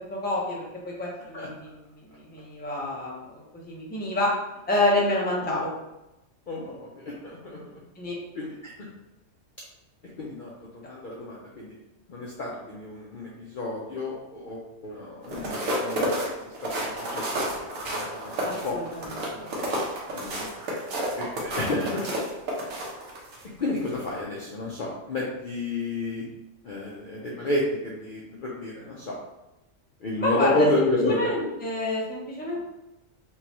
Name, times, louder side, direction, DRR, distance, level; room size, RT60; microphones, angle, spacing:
voice 1, 0.1-4.3 4.7-5.7 8.0-8.1 18.4-19.5 21.6-21.7 30.2-32.6, left 1 dB, 10° left, -4 dB, 0.5 m, -28 dB
voice 2, 6.5-7.6 8.3-8.9 10.2-11.7 12.1-17.5 17.8-18.8 19.0-19.5 20.1-20.5 21.1-22.0 23.6-26.2 26.6-29.2 30.0-31.3, left 2 dB, 55° left, -4 dB, 0.6 m, -31 dB
sound 1, 15.2-23.4 23.9-24.1, right 1 dB, 85° right, 1.2 m, -30 dB
4.5 x 2.2 x 2.9 m, 0.95 s
omnidirectional pair, 1.3 m